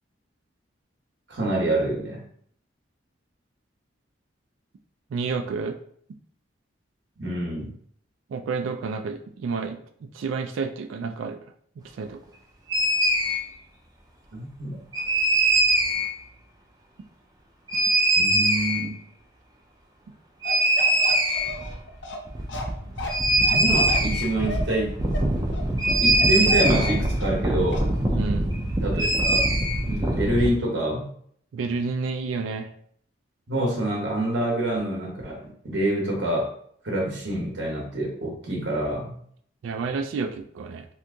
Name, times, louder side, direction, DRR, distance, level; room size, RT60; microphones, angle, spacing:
voice 1, 1.3-2.2 7.2-7.7 14.3-14.8 18.2-19.0 22.8-22.9 23.5-25.0 26.0-27.9 28.8-29.5 29.9-31.1 33.5-36.5 36.8-39.2, right 1 dB, 65° right, -1 dB, 0.9 m, -26 dB
voice 2, 5.1-5.8 8.3-9.8 10.1-11.4 12.0-12.2 28.2-28.5 31.5-32.7 39.6-40.9, right 4 dB, 90° right, 7 dB, 0.3 m, -30 dB
sound 1, 12.7-13.4 14.9-16.1 17.7-18.8 20.4-21.7 22.0-22.1 22.3-30.5, right 1 dB, 20° right, 0.4 m, -22 dB
Bark, 20.4-27.4 27.7-27.9, left 1 dB, 70° left, 0.5 m, -35 dB
2.8 x 2.5 x 3.4 m, 0.62 s
head